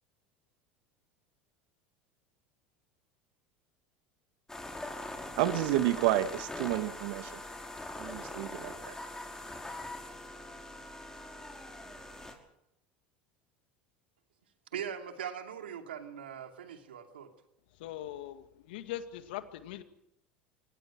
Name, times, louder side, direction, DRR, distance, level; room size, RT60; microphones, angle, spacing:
sound 1, 4.5-12.3, left 1 dB, 10° left, 5.5 m, -42 dB
voice 1, 5.4-7.4 8.0-8.9, right 14 dB, 70° right, 11 dB, 1.7 m, -30 dB
voice 2, 14.7-17.3, right 8 dB, 85° right, 5 dB, 2.7 m, -40 dB
voice 3, 17.8-19.8, left 12 dB, 75° left, 9 dB, 2.1 m, -41 dB
25.0 x 19.5 x 6.4 m, 0.81 s
hypercardioid pair, 85°, 5 cm